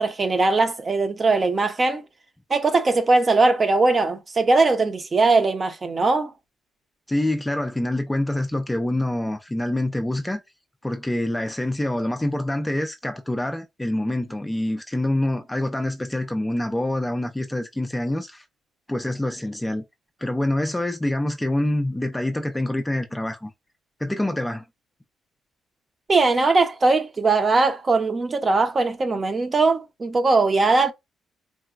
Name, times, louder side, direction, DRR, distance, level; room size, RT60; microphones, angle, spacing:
voice 1, 0.0-2.0 2.5-6.3 26.1-30.9, right 3 dB, 35° right, 0.6 m, -20 dB
voice 2, 7.1-10.4 10.8-18.4 18.9-19.8 20.2-23.5 24.0-24.6, left 1 dB, 10° left, 0.4 m, -26 dB
3.8 x 2.1 x 2.4 m
cardioid pair, 90°, 0 cm